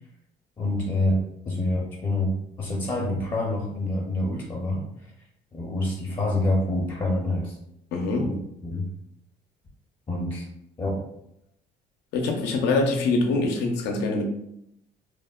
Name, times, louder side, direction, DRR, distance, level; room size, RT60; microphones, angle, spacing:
voice 1, 0.6-2.3 2.6-4.8 5.5-7.6 8.1-8.3 8.6-8.9 10.1-10.5 10.8-11.1, left 1 dB, 30° left, -2 dB, 0.5 m, -26 dB
voice 2, 7.9-8.3 12.1-14.2, left 3 dB, 85° left, 3 dB, 0.5 m, -24 dB
3.1 x 2.1 x 2.2 m, 0.78 s
cardioid pair, 110°, 17 cm